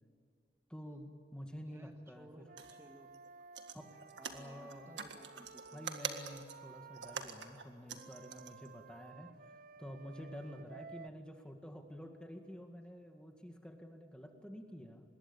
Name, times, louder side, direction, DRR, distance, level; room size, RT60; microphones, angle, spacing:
voice 1, 0.7-2.5 3.7-3.9 4.3-4.9 5.7-9.3 9.8-15.0, equal, 5° left, 4 dB, 1.9 m, -49 dB
voice 2, 1.7-3.1 4.2-5.9 10.6-10.9 14.3-14.5, right 1 dB, 15° right, 4 dB, 1.8 m, -58 dB
Wind instrument woodwind instrument, 2.4-7.3 7.9-11.1, right 5 dB, 50° right, 0.6 m, -55 dB
sound 1, 2.6-2.8 3.1-3.3 3.5-8.7 9.1-9.2, right 6 dB, 80° right, 1.8 m, -45 dB
25.0 x 21.5 x 8.8 m, 2.1 s
head